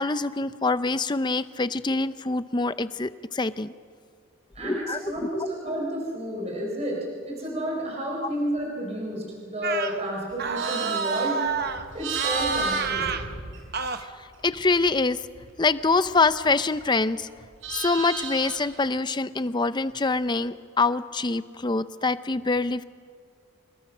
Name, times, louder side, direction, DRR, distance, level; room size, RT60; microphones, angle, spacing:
voice 1, 0.0-3.7 4.6-5.3 14.4-15.2 15.6-17.3 17.7-22.8, left 3 dB, 20° left, 13 dB, 0.5 m, -25 dB
voice 2, 4.5-11.4 11.9-13.1, equal, 30° right, -2 dB, 4.5 m, -31 dB
sound 1, 9.6-10.0 10.4-11.8 12.1-13.3 13.7-14.0, right 5 dB, 45° right, 1.0 m, -28 dB
Livestock farm animals working animals, 10.3-14.0 14.3-16.9 17.2-18.8, right 5 dB, 65° right, 4.4 m, -35 dB
27.5 x 21.0 x 6.1 m, 2.2 s
head